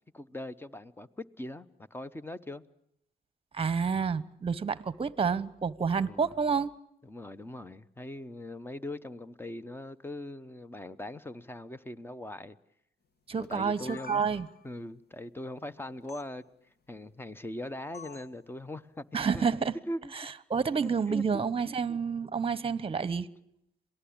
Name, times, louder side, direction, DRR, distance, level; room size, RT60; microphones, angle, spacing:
voice 1, 0.1-2.6 5.9-6.3 7.0-12.6 13.4-14.2 14.6-16.5 16.9-19.0 19.3-19.5 19.9-20.1 20.8-21.5, left 1 dB, 10° left, 1.1 m, -41 dB
voice 2, 3.5-6.7 13.3-14.5 19.1-19.7 20.5-23.3, right 6 dB, 30° right, 1.1 m, -29 dB
sound 1, 13.4-14.7 16.1-16.3 17.9-18.4, left 6 dB, 55° left, 2.4 m, -48 dB
27.0 x 18.5 x 8.8 m
cardioid pair, 90°, 20 cm